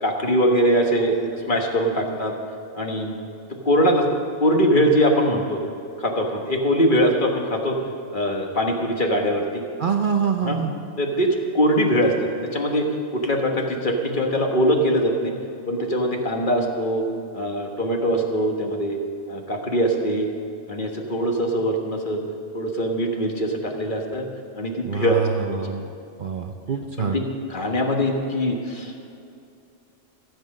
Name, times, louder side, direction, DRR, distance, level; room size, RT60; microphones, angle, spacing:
voice 1, 0.0-2.3 2.7-3.2 3.5-4.1 4.4-5.6 6.0-7.8 8.1-9.6 10.4-10.6 11.0-12.1 12.5-12.9 13.1-15.3 15.7-17.0 17.3-19.0 19.3-20.3 20.7-22.2 22.5-24.3 24.5-25.2 25.5-25.6 27.0-27.2 27.5-29.0, equal, 45° left, 2 dB, 1.4 m, -22 dB
voice 2, 9.8-10.7 24.8-25.9 26.2-27.2, right 6 dB, 50° right, 5 dB, 0.7 m, -25 dB
15.0 x 8.1 x 6.4 m, 2.6 s
omnidirectional pair, 1.2 m